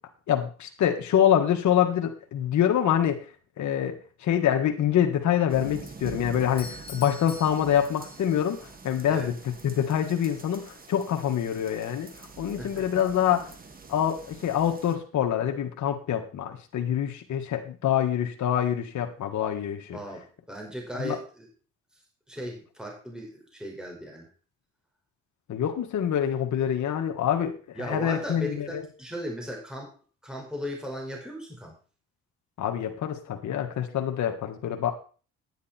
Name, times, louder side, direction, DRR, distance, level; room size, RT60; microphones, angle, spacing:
voice 1, 0.3-3.2 3.6-8.6 8.8-9.3 9.6-13.5 13.9-20.0 21.0-21.2 25.5-28.8 32.6-34.9, left 9 dB, 70° left, 4 dB, 1.7 m, -26 dB
sound 1, 5.5-15.0, right 4 dB, 30° right, 1.9 m, -45 dB
Doorbell, 6.6-8.6, left 3 dB, 30° left, 3.2 m, -45 dB
voice 2, 12.6-13.0 19.9-21.5 22.3-24.3 27.7-29.9 30.2-31.8, equal, ahead, -1 dB, 5.0 m, -37 dB
10.5 x 10.0 x 4.4 m, 0.37 s
cardioid pair, 90°, 30 cm